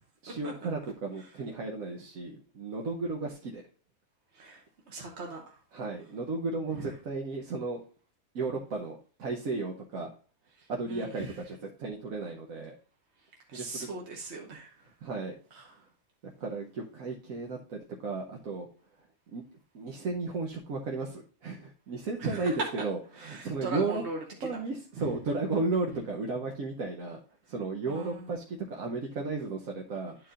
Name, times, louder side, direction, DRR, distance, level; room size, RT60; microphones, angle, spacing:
voice 1, 0.2-3.6 5.7-7.8 8.3-10.1 10.7-12.7 13.5-13.9 15.0-15.3 16.2-18.7 19.3-19.4 19.7-24.1 24.4-27.2 27.5-30.2, right 3 dB, 75° right, 0 dB, 1.3 m, -34 dB
voice 2, 4.3-5.6 10.6-11.3 13.5-14.7 15.5-15.7 22.2-22.5 23.2-24.2 24.5-24.6 25.0-25.1 27.9-28.2, right 3 dB, 55° right, 0 dB, 1.2 m, -39 dB
11.0 x 4.7 x 2.5 m, 0.41 s
omnidirectional pair, 1.5 m